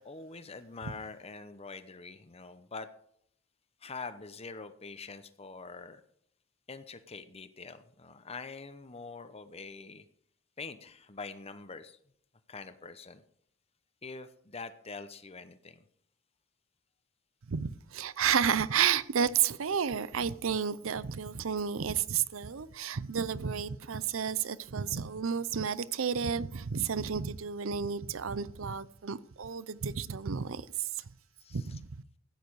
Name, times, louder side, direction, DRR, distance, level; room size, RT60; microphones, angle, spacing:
voice 1, 0.0-2.9 3.8-6.0 6.7-10.1 10.6-12.0 12.5-13.2 14.0-15.8 31.4-31.8, left 4 dB, 30° left, 0.9 m, -44 dB
voice 2, 17.5-31.0 31.5-32.0, right 7 dB, 75° right, 0.6 m, -31 dB
14.5 x 9.4 x 4.8 m
head